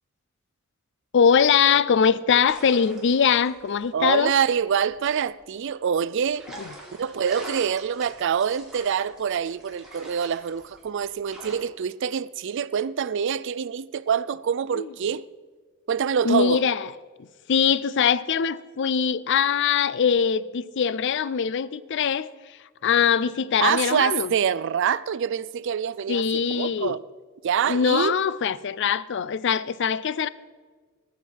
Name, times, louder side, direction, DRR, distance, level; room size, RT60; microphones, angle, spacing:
voice 1, 1.1-4.3 14.8-14.9 16.2-16.9 17.5-22.3 22.8-24.3 26.1-27.0 27.7-30.3, left 7 dB, 60° left, 0.4 m, -22 dB
sound 1, 2.3-5.5 6.3-11.6, right 1 dB, ahead, 2.9 m, -44 dB
voice 2, 3.9-6.4 7.0-15.2 15.9-16.6 23.6-27.0 27.4-28.2, right 7 dB, 60° right, 0.4 m, -25 dB
18.5 x 7.3 x 4.6 m
head